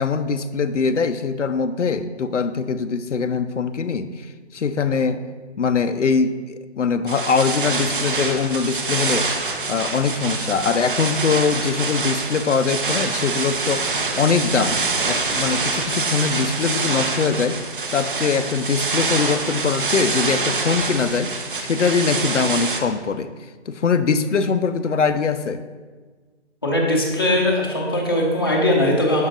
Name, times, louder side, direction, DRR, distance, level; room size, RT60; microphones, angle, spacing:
voice 1, 0.0-5.2 5.6-9.3 9.7-23.3 23.7-25.6, left 5 dB, 85° left, 10 dB, 0.5 m, -22 dB
sound 1, 7.1-22.8, right 3 dB, 45° right, 0.7 m, -25 dB
voice 2, 26.6-29.3, left 1 dB, 20° left, -3 dB, 0.6 m, -20 dB
6.2 x 5.5 x 3.8 m, 1.4 s
figure-of-eight pair, 155°, 35 cm